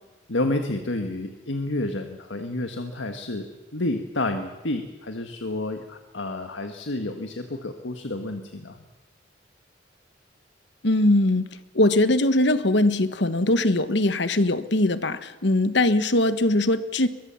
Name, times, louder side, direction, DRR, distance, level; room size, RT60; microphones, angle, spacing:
voice 1, 0.3-3.5 3.7-8.8, left 2 dB, 85° left, 6 dB, 1.7 m, -30 dB
voice 2, 10.8-11.5 11.7-17.1, left 1 dB, 70° left, 12 dB, 1.3 m, -21 dB
23.0 x 22.0 x 7.2 m, 1.2 s
head